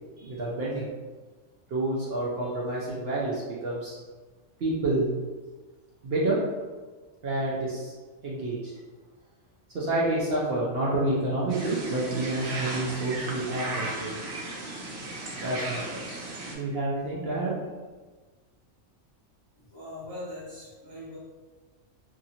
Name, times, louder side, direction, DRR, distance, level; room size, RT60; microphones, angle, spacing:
voice 1, 0.2-0.9 1.7-4.0 4.6-5.1 6.0-6.4 7.2-7.9 8.2-8.7 9.7-14.2 15.4-16.2 16.5-17.5, right 2 dB, 60° right, -6 dB, 0.7 m, -29 dB
sound 1, 11.5-16.5, right 2 dB, 80° right, 1.1 m, -36 dB
voice 2, 19.5-21.2, left 1 dB, 30° left, -9 dB, 0.5 m, -41 dB
2.8 x 2.5 x 2.7 m, 1.4 s
omnidirectional pair, 1.4 m